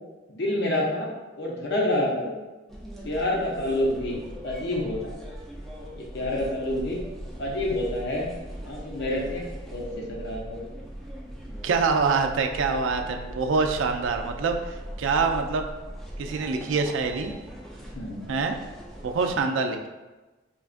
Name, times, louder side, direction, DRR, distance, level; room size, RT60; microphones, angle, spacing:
voice 1, 0.3-1.1 1.4-2.4 3.0-5.1 5.9-7.0 7.4-8.3 8.6-10.7 17.9-18.2, left 1 dB, 60° left, -2 dB, 0.7 m, -28 dB
sound 1, 2.7-19.4, right 1 dB, ahead, 0.5 m, -40 dB
voice 2, 11.6-15.7 16.2-17.3 18.3-18.6 19.0-19.9, right 4 dB, 80° right, 5 dB, 0.4 m, -25 dB
5.1 x 2.3 x 2.5 m, 1.2 s
head